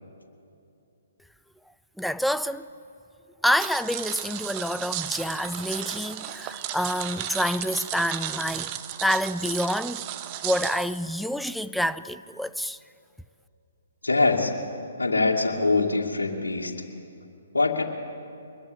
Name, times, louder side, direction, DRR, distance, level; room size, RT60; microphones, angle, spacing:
voice 1, 2.0-2.7 3.4-10.0 10.4-12.8, equal, ahead, 0.5 m, -27 dB
sound 1, 3.6-10.8, right 12 dB, 30° right, 1.2 m, -34 dB
voice 2, 14.0-14.5 15.0-16.7 17.5-17.8, left 3 dB, 90° left, 2.5 m, -23 dB
24.5 x 21.5 x 8.1 m
figure-of-eight pair, 135°, 0 cm